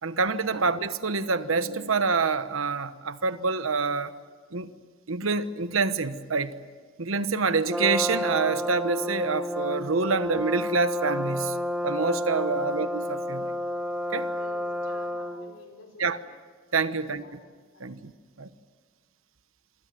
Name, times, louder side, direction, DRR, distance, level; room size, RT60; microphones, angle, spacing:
voice 1, 0.0-4.1 4.5-4.7 5.1-6.5 7.0-11.6 11.8-13.5 14.1-14.3 16.0-16.2 16.7-17.4 17.8-18.1 18.4-18.5, right 4 dB, 85° right, 1.1 m, -27 dB
Brass instrument, 7.7-15.5, left 1 dB, 5° right, 0.8 m, -30 dB
voice 2, 14.4-16.3 16.9-17.4 17.7-18.0, left 2 dB, 80° left, 5.3 m, -52 dB
27.0 x 25.0 x 7.6 m
head